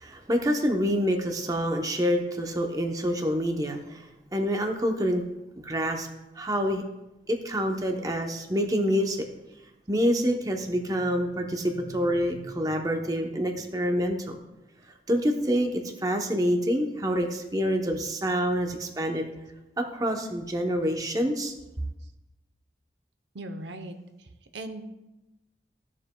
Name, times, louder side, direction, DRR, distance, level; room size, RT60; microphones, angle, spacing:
voice 1, 0.0-4.0 4.3-5.2 5.6-6.1 6.4-6.8 7.3-9.2 9.9-14.4 15.1-19.3 19.8-21.5, equal, 20° right, 4 dB, 0.7 m, -27 dB
voice 2, 23.3-24.9, right 1 dB, 90° right, 7 dB, 0.7 m, -39 dB
15.0 x 7.3 x 2.2 m, 0.98 s
head